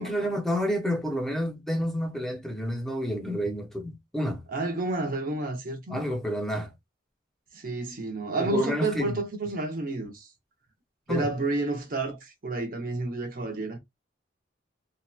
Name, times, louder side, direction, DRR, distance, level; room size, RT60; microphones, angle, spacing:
voice 1, 0.0-4.4 5.9-6.7 8.4-9.2 11.1-11.3, equal, ahead, 0.5 m, -29 dB
voice 2, 4.5-6.0 7.5-10.3 11.1-13.8, right 3 dB, 50° right, 0.6 m, -30 dB
2.7 x 2.1 x 2.3 m
head